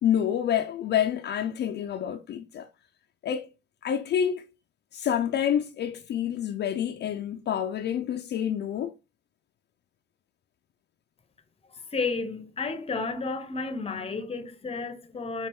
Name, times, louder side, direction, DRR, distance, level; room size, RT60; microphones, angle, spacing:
voice 1, 0.0-2.7 3.2-3.5 3.8-4.4 4.9-8.9, left 9 dB, 60° left, 0.5 m, -28 dB
voice 2, 11.7-15.5, left 4 dB, 30° left, 0.7 m, -32 dB
4.3 x 2.4 x 3.4 m
cardioid pair, 90°, 20 cm